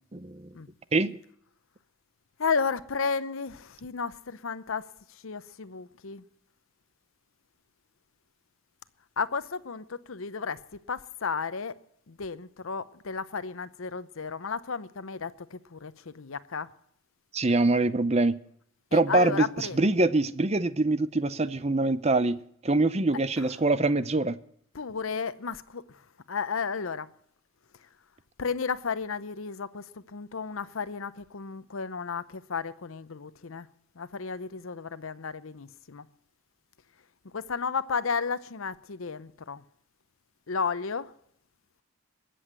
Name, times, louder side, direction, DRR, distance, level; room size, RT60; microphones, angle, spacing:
voice 1, 0.1-0.5 0.9-1.2 17.3-18.4 18.9-24.4, right 2 dB, 30° right, 0.6 m, -24 dB
voice 2, 2.4-6.2 9.2-11.8 12.1-16.7 18.9-19.9 23.4-23.5 24.7-26.0 26.3-27.1 28.4-33.7 34.0-36.1 37.3-39.6 40.5-41.1, left 5 dB, 75° left, 0.8 m, -33 dB
20.5 x 7.9 x 7.6 m
head